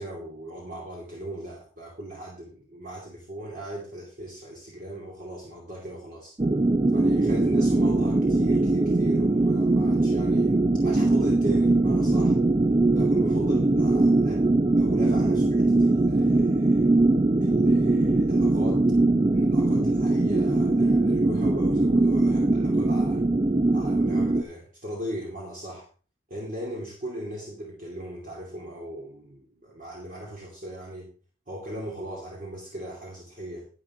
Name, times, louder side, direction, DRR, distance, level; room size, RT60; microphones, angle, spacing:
voice 1, 0.0-6.3 6.9-12.4 12.9-16.9 17.4-18.9 19.3-23.2 23.7-25.9 26.3-31.1 31.5-33.7, right 1 dB, 45° right, -3 dB, 2.6 m, -38 dB
sound 1, 6.4-24.4, right 2 dB, 25° right, 0.4 m, -21 dB
11.0 x 9.5 x 3.7 m, 0.38 s
head